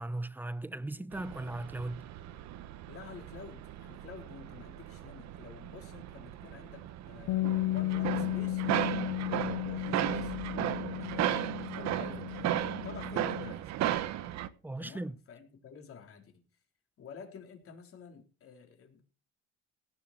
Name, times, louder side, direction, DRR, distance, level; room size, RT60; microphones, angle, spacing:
voice 1, 0.0-2.1 14.6-15.1, right 2 dB, 5° right, 0.7 m, -37 dB
sound 1, 1.1-14.5, right 12 dB, 65° right, 1.3 m, -36 dB
voice 2, 2.9-10.3 10.9-12.5 12.8-13.7 14.8-16.4 17.0-19.1, left 6 dB, 50° left, 3.8 m, -50 dB
Bass guitar, 7.3-13.5, left 18 dB, 75° left, 0.6 m, -34 dB
17.5 x 7.0 x 6.0 m
cardioid pair, 110°, 29 cm